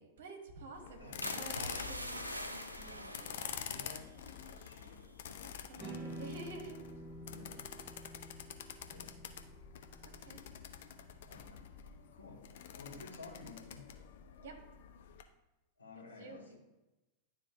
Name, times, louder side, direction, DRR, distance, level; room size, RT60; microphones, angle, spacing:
voice 1, 0.0-2.3 2.7-3.6 5.7-6.8 10.0-10.4 14.4-14.6 16.2-16.6, right 3 dB, 60° right, 4 dB, 1.1 m, -50 dB
sound 1, 0.7-15.2, left 8 dB, 55° left, 0.5 m, -47 dB
voice 2, 1.0-1.6 3.6-4.1 4.6-5.0 5.8-6.3 7.2-7.6 8.9-9.2 11.2-11.6 12.1-13.8 15.8-16.6, left 3 dB, 80° left, -3 dB, 1.5 m, -53 dB
sound 2, 1.2-5.6 6.1-6.4, equal, 85° right, 0.5 m, -45 dB
sound 3, 5.8-12.0, right 1 dB, 25° right, 1.6 m, -50 dB
10.5 x 3.7 x 2.6 m, 1.0 s
figure-of-eight pair, 90°, 0 cm